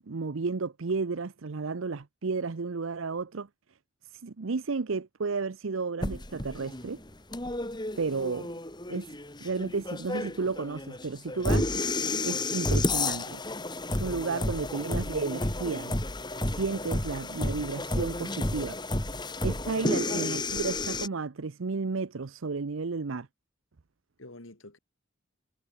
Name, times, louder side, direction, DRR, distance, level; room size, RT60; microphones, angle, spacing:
voice 1, 0.1-3.5 4.1-7.0 8.0-8.5 8.9-9.1 9.4-11.8 12.2-13.4 13.9-15.9 16.5-18.8 19.4-23.3, right 4 dB, 85° right, 0.7 m, -32 dB
sound 1, 6.0-21.1, left 2 dB, 20° left, 2.5 m, -31 dB
voice 2, 19.6-20.3 24.2-24.8, left 2 dB, 85° left, 3.2 m, -45 dB
head